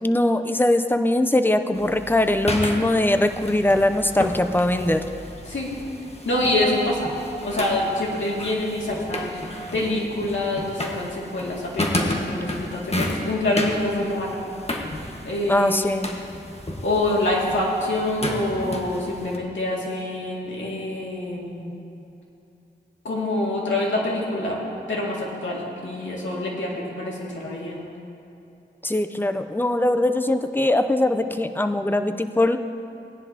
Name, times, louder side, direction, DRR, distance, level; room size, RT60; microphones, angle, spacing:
voice 1, 0.0-5.0 15.5-16.2 28.8-32.6, left 1 dB, 10° left, 8 dB, 0.6 m, -21 dB
sound 1, 1.7-19.4, left 1 dB, 30° left, 1.5 m, -32 dB
voice 2, 6.2-7.1 7.4-14.4 15.2-15.9 16.8-21.6 23.0-24.6 24.9-27.8, left 1 dB, 80° left, -4 dB, 2.4 m, -26 dB
17.5 x 10.5 x 2.9 m, 2.8 s
cardioid pair, 45°, 20 cm